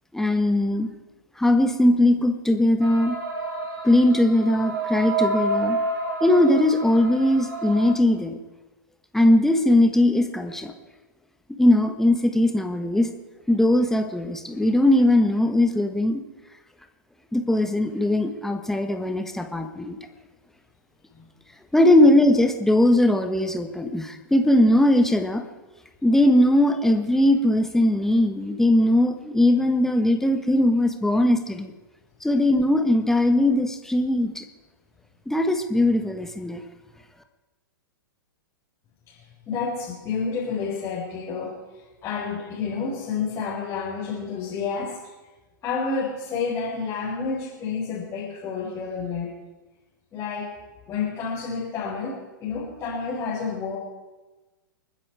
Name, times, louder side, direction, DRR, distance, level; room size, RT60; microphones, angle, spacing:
voice 1, 0.1-0.9 1.4-3.2 3.8-5.8 6.2-8.4 9.1-10.7 11.6-13.1 13.5-16.2 17.3-20.0 21.7-25.4 26.0-31.7 32.2-34.4 35.3-36.6, left 1 dB, 5° left, 6 dB, 1.4 m, -20 dB
sound 1, 2.8-7.9, right 2 dB, 55° right, 4.1 m, -29 dB
voice 2, 39.1-41.6 42.0-45.0 45.6-49.3 50.1-50.6 50.9-53.8, left 5 dB, 25° left, -5 dB, 4.1 m, -30 dB
29.5 x 10.0 x 4.8 m, 1.2 s
figure-of-eight pair, 105°, 12 cm